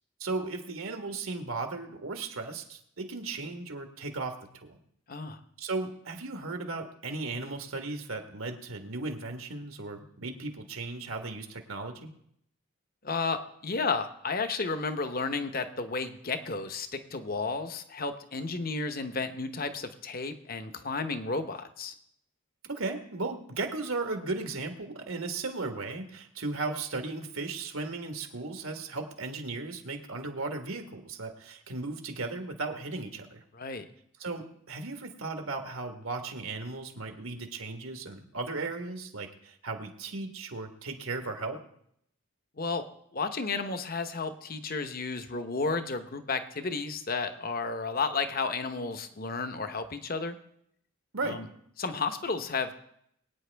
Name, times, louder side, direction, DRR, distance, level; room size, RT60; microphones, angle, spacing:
voice 1, 0.2-4.8 5.6-12.1 22.6-33.4 34.2-41.6 51.1-51.4, right 3 dB, 75° right, 5 dB, 1.5 m, -36 dB
voice 2, 5.1-5.4 13.0-21.9 33.5-33.8 42.6-42.8 43.1-50.4 51.2-51.5 51.8-52.7, left 4 dB, 45° left, 8 dB, 0.9 m, -32 dB
22.5 x 9.2 x 3.4 m, 0.71 s
head